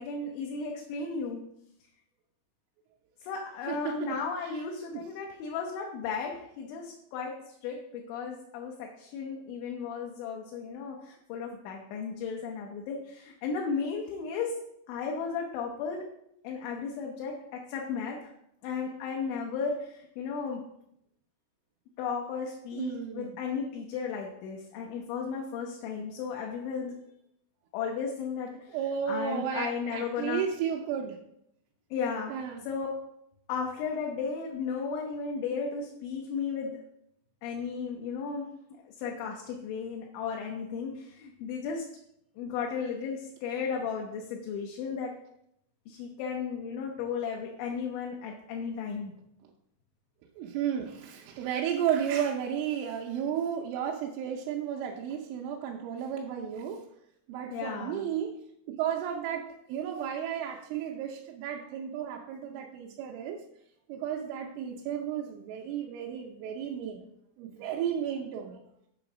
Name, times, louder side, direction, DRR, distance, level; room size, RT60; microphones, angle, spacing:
voice 1, 0.0-1.4 3.2-14.5 14.9-16.1 16.4-18.3 18.6-20.6 22.0-26.9 27.7-28.8 29.1-30.4 31.9-32.3 32.7-32.9 33.5-36.8 37.4-38.5 38.9-41.9 42.4-45.1 45.9-49.1 57.5-58.1, left 5 dB, 80° left, 0 dB, 3.1 m, -35 dB
voice 2, 3.7-4.6 4.9-5.1 22.7-23.4 28.7-31.2 32.3-32.6 50.4-56.9 57.3-58.4 58.7-63.4 63.9-67.1 67.4-68.6, right 9 dB, 85° right, 0 dB, 3.1 m, -33 dB
8.4 x 4.0 x 6.0 m, 0.76 s
omnidirectional pair, 5.5 m